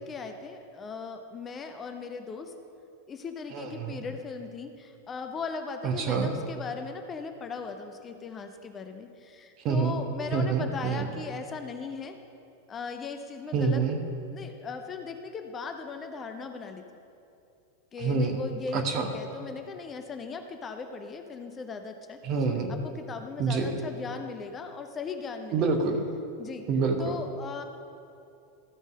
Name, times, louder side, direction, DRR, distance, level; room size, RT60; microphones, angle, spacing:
voice 1, 0.0-2.5 3.1-12.2 12.7-13.8 14.3-16.8 17.9-22.2 22.7-25.7 26.4-26.7 27.0-27.6, left 5 dB, 20° left, 6 dB, 0.6 m, -38 dB
voice 2, 3.5-4.0 5.8-6.3 9.6-9.9 10.3-11.1 13.5-14.0 18.0-18.4 18.7-19.1 22.2-22.8 23.4-23.8 25.5-26.1 26.7-27.1, right 4 dB, 35° right, 5 dB, 1.1 m, -27 dB
13.5 x 5.3 x 6.3 m, 2.6 s
figure-of-eight pair, 90°, 0 cm